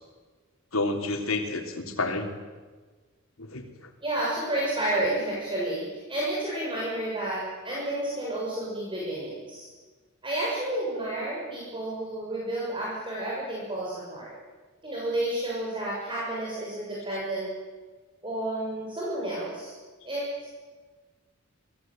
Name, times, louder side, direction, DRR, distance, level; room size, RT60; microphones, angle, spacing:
voice 1, 0.7-2.3 3.4-3.9, left 2 dB, 85° left, 3 dB, 3.5 m, -30 dB
voice 2, 4.0-9.7 10.2-14.3 14.8-17.5 18.2-19.7 20.0-20.3, right 1 dB, 25° right, -5 dB, 7.1 m, -31 dB
27.0 x 19.0 x 9.1 m, 1.4 s
head